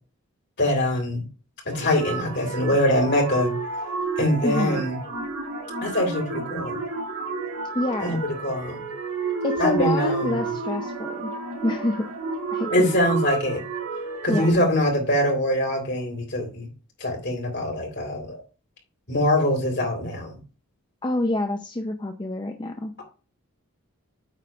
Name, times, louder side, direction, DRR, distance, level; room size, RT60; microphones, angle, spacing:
voice 1, 0.6-1.2 1.6-3.5 4.2-5.0 5.8-6.8 8.0-8.9 9.6-10.4 12.7-13.7 14.2-16.7 17.0-18.4 19.1-20.4, left 1 dB, 50° left, 1 dB, 3.3 m, -23 dB
sound 1, 1.7-14.5, right 4 dB, 90° right, 3.4 m, -31 dB
voice 2, 4.4-4.8 7.7-8.2 9.4-11.3 11.6-12.1 12.5-12.9 14.3-14.5 21.0-22.9, left 2 dB, 20° left, 5 dB, 0.5 m, -27 dB
9.0 x 3.7 x 6.1 m, 0.34 s
head